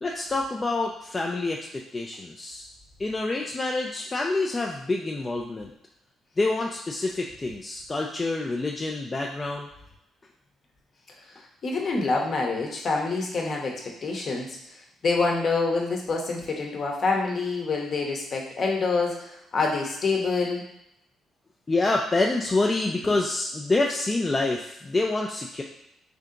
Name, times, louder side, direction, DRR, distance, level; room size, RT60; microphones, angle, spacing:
voice 1, 0.0-2.7 3.0-5.7 6.4-9.7 21.7-25.6, left 2 dB, 25° left, 0 dB, 0.4 m, -27 dB
voice 2, 11.6-14.6 15.0-20.6, left 3 dB, 50° left, 0 dB, 0.9 m, -26 dB
3.4 x 2.8 x 3.7 m, 0.82 s
cardioid pair, 90°, 0 cm